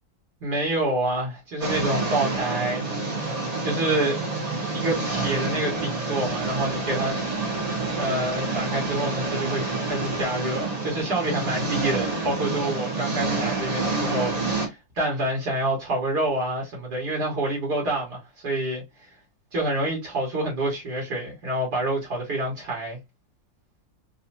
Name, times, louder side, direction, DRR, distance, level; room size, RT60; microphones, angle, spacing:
voice 1, 0.4-2.8 3.6-4.2 4.7-7.2 8.0-18.8 19.5-23.0, right 1 dB, 60° right, 1.8 m, -27 dB
sound 1, 1.6-14.7, right 3 dB, 30° right, 0.8 m, -28 dB
4.0 x 2.7 x 2.7 m
omnidirectional pair, 2.1 m